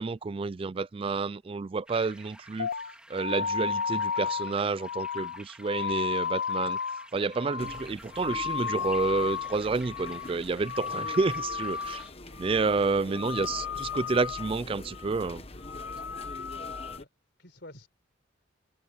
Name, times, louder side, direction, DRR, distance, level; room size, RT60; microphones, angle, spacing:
voice 1, 0.0-2.7 3.1-6.8 7.1-12.0 12.4-15.4, right 4 dB, 25° right, 0.3 m, -29 dB
sound 1, 1.9-12.1, right 1 dB, 5° right, 2.3 m, -51 dB
sound 2, 2.6-9.6 9.8-10.4 10.6-12.1 12.4-12.8 13.1-14.6 14.9-15.3 15.6-17.0, left 6 dB, 70° left, 0.5 m, -33 dB
sound 3, 7.6-17.0, left 2 dB, 30° left, 1.2 m, -45 dB
voice 2, 12.7-14.1 16.3-17.1 17.4-17.9, left 1 dB, 55° left, 4.4 m, -52 dB
head